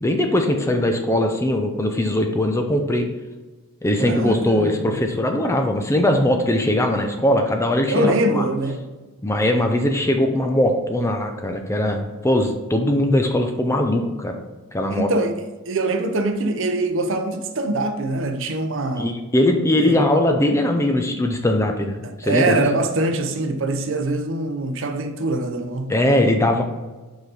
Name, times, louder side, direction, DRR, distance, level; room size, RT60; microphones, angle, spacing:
voice 1, 0.0-3.1 3.8-8.4 9.2-14.3 14.7-15.1 19.0-22.6 25.9-26.6, left 1 dB, 10° left, 0.5 m, -20 dB
voice 2, 4.0-4.9 7.9-8.9 14.9-15.4 15.7-19.2 19.8-20.0 22.0-25.9, right 2 dB, 60° right, 0.6 m, -23 dB
5.0 x 5.0 x 3.9 m
head